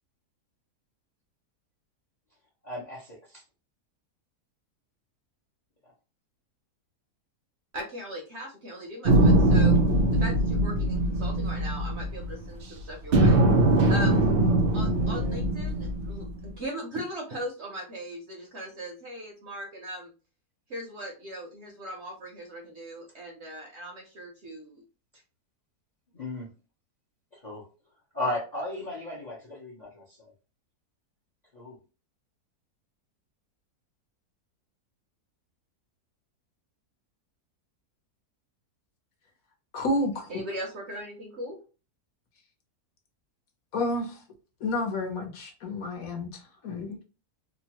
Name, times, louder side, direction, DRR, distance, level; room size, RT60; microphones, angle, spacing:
voice 1, 2.6-3.4 14.9-15.4 26.1-26.5 27.3-27.7 28.1-30.2 31.5-31.8, left 1 dB, 40° left, -2 dB, 0.6 m, -36 dB
voice 2, 7.7-9.8 10.1-13.4 13.9-14.2 14.7-20.1 20.7-24.8 40.3-41.6, equal, 60° right, 1 dB, 0.8 m, -38 dB
sound 1, 9.0-12.6 13.1-16.5, right 1 dB, 85° right, 0.5 m, -22 dB
voice 3, 39.7-40.3 43.7-44.2 44.6-47.0, left 2 dB, 65° left, 3 dB, 1.1 m, -30 dB
2.9 x 2.1 x 2.8 m, 0.33 s
omnidirectional pair, 1.7 m